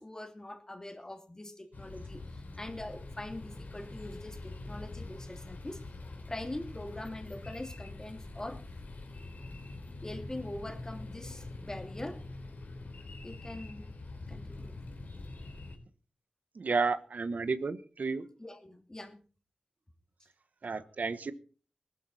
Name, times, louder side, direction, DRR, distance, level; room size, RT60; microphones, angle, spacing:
voice 1, 0.0-5.8 6.3-8.6 10.0-12.2 13.2-14.0 14.3-14.8 18.4-19.2, left 1 dB, 20° left, 6 dB, 2.9 m, -43 dB
sound 1, 1.7-15.8, left 2 dB, 70° left, 3.9 m, -44 dB
voice 2, 16.5-18.3 20.6-21.3, right 4 dB, 65° right, 12 dB, 1.1 m, -32 dB
19.5 x 12.5 x 4.2 m, 0.38 s
wide cardioid pair, 95°, 3 cm